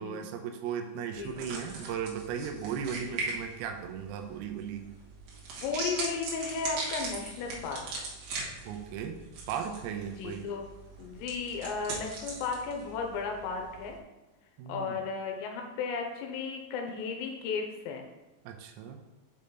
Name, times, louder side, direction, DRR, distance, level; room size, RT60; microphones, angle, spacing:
voice 1, 0.0-4.9 8.6-9.2 9.5-10.5 14.6-15.0 18.4-19.0, right 7 dB, 85° right, 4 dB, 2.2 m, -36 dB
voice 2, 1.1-1.6 3.1-3.2 5.6-8.1 10.2-10.6 11.0-14.0 14.7-18.0, left 5 dB, 80° left, 3 dB, 2.9 m, -35 dB
sound 1, 1.1-14.0, right 3 dB, 65° right, 2.4 m, -40 dB
6.8 x 5.5 x 3.9 m, 1.1 s
omnidirectional pair, 5.3 m